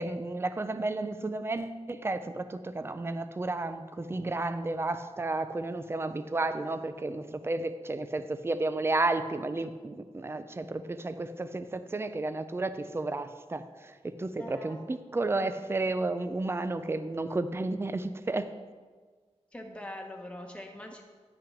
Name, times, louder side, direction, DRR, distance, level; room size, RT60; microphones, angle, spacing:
voice 1, 0.0-18.5, right 2 dB, 20° right, 11 dB, 0.4 m, -32 dB
voice 2, 14.4-14.8 19.5-21.0, left 1 dB, 10° left, 1 dB, 1.2 m, -42 dB
10.0 x 5.8 x 5.1 m, 1.5 s
wide cardioid pair, 110°, 11 cm